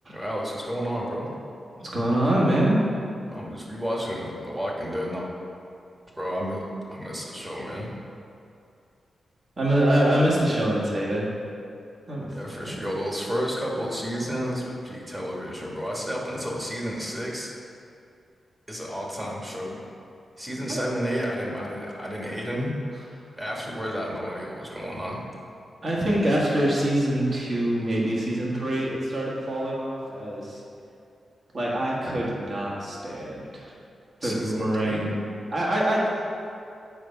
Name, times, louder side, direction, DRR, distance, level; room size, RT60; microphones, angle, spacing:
voice 1, 0.1-1.3 3.3-5.3 6.2-7.9 12.3-17.5 18.7-19.8 20.4-22.7 23.3-25.2 34.2-35.1, equal, 15° right, -3 dB, 1.5 m, -31 dB
voice 2, 1.8-2.8 9.6-11.3 12.1-12.8 20.6-20.8 25.8-30.6 31.5-33.7 34.2-35.1 35.5-36.2, right 1 dB, 45° right, -5 dB, 1.8 m, -25 dB
8.0 x 4.6 x 5.4 m, 2.5 s
wide cardioid pair, 100°, 0 cm